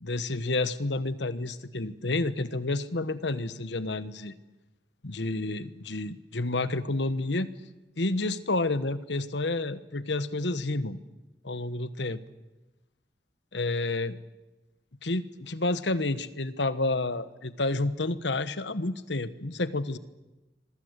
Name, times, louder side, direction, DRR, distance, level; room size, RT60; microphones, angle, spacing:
voice 1, 0.0-4.4 5.0-7.5 8.0-11.0 11.4-12.2 13.5-14.2 15.0-20.0, left 2 dB, 80° left, 14 dB, 1.3 m, -30 dB
26.0 x 22.5 x 8.2 m, 1.1 s
head